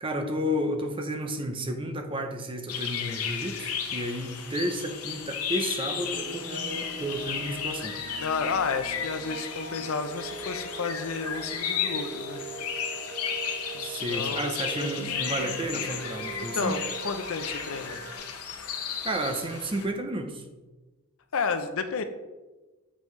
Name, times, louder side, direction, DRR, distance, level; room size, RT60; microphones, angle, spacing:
voice 1, 0.0-8.0 13.8-16.8 19.0-20.4, right 1 dB, 25° right, 5 dB, 0.6 m, -32 dB
sound 1, 2.7-19.8, left 7 dB, 85° left, 0.9 m, -34 dB
sound 2, 6.0-18.2, right 3 dB, 75° right, 1.8 m, -42 dB
voice 2, 8.2-12.4 13.7-15.3 16.4-18.0 21.3-22.0, left 5 dB, 65° left, 9 dB, 0.6 m, -32 dB
7.5 x 5.2 x 3.2 m, 1.2 s
head